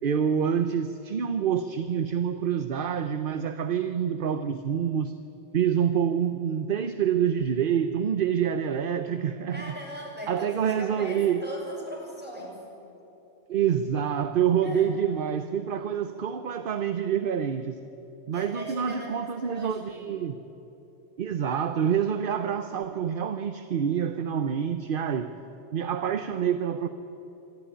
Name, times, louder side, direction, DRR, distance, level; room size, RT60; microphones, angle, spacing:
voice 1, 0.0-5.1 5.5-9.7 10.3-11.4 13.5-17.8 18.3-20.4 21.2-25.3 25.7-26.9, right 8 dB, 55° right, 10 dB, 0.9 m, -27 dB
voice 2, 9.5-12.6 14.6-14.8 18.3-20.1, equal, 10° right, -3 dB, 5.9 m, -40 dB
25.5 x 13.0 x 10.0 m, 2.9 s
omnidirectional pair, 1.2 m